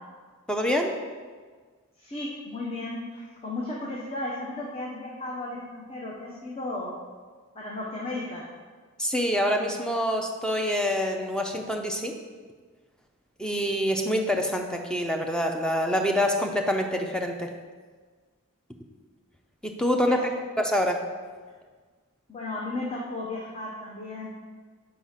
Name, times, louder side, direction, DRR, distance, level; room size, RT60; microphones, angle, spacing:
voice 1, 0.5-1.0 9.0-12.1 13.4-17.5 19.6-20.2 20.6-21.0, equal, 5° left, 3 dB, 0.5 m, -26 dB
voice 2, 2.0-7.0 7.5-8.5 19.9-20.2 22.3-24.3, left 2 dB, 30° left, -4 dB, 0.8 m, -35 dB
4.8 x 4.8 x 5.6 m, 1.5 s
head